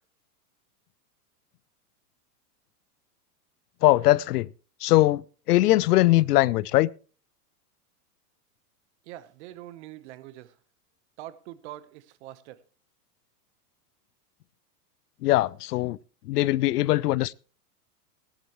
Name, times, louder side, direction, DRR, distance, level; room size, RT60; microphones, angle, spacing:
voice 1, 3.8-4.5 4.8-5.2 5.5-6.9 15.2-16.0 16.3-17.3, left 17 dB, 80° left, 0.6 m, -21 dB
voice 2, 9.1-10.5 11.2-12.6, right 14 dB, 45° right, 1.1 m, -43 dB
17.0 x 11.5 x 3.1 m
supercardioid pair, 155°, 46 cm